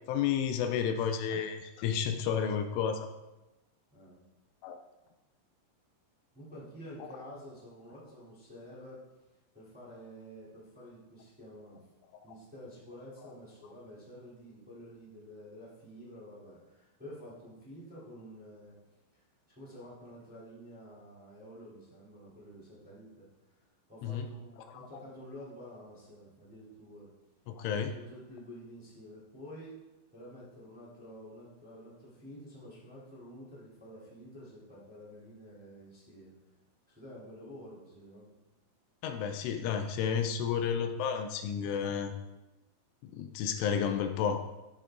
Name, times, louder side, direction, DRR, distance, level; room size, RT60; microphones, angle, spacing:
voice 1, 0.1-3.1 4.6-4.8 24.0-24.3 27.5-27.9 39.0-42.1 43.0-44.6, left 7 dB, 80° left, 6 dB, 3.2 m, -31 dB
voice 2, 6.3-9.0 9.5-11.8 12.2-18.7 19.5-23.3 23.9-27.1 27.7-29.8 30.1-36.3 36.9-38.3, equal, ahead, -8 dB, 2.6 m, -49 dB
12.0 x 8.3 x 3.9 m, 1.0 s
omnidirectional pair, 5.7 m